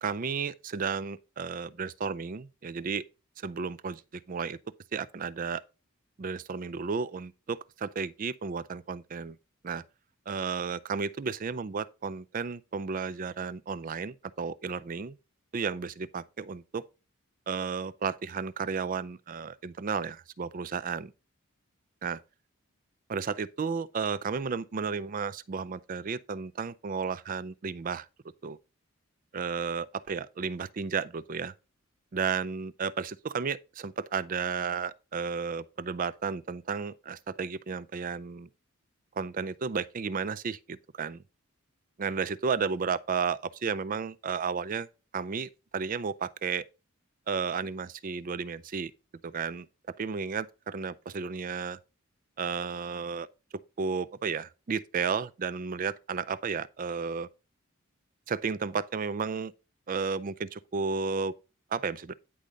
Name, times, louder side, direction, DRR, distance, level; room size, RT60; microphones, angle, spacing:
voice 1, 0.0-3.0 3.4-4.0 4.3-4.6 4.9-5.6 6.2-9.4 9.6-9.8 10.3-15.2 15.5-16.8 17.5-21.1 22.0-22.2 23.1-28.1 28.4-28.6 29.3-31.5 32.1-38.5 39.2-41.2 42.0-44.9 45.1-46.6 47.3-48.9 49.2-49.7 50.0-51.8 52.4-53.3 53.8-57.3 58.3-59.5 59.9-61.3 61.7-62.1, right 5 dB, 40° right, 0.4 m, -33 dB
9.9 x 3.9 x 5.0 m
head